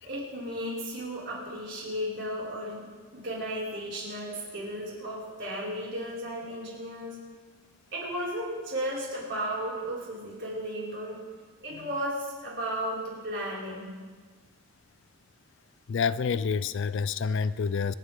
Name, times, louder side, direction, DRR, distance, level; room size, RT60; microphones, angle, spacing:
voice 1, 0.0-7.2 7.9-11.2 11.6-13.9, equal, 50° right, -7 dB, 5.6 m, -34 dB
voice 2, 15.9-17.9, left 5 dB, 55° left, 16 dB, 0.3 m, -28 dB
27.5 x 9.4 x 3.8 m, 1.5 s
head